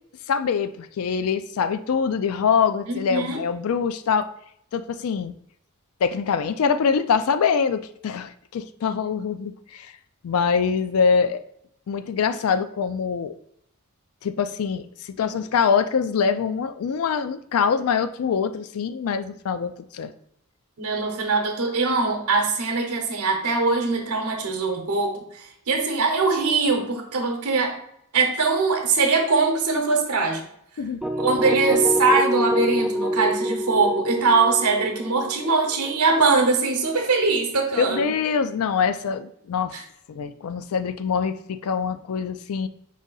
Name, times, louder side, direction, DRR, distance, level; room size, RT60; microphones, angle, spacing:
voice 1, 0.3-4.3 4.7-5.3 6.0-9.9 10.2-11.4 11.9-13.4 14.2-20.1 30.8-31.0 37.8-39.8 40.1-42.7, left 6 dB, 70° left, 11 dB, 0.4 m, -24 dB
voice 2, 2.9-3.4 20.8-27.8 28.1-30.5 31.2-38.1 39.7-39.8, right 4 dB, 90° right, 2 dB, 0.8 m, -22 dB
sound 1, 31.0-36.9, equal, 5° right, 0.3 m, -26 dB
4.9 x 2.7 x 3.9 m, 0.71 s
head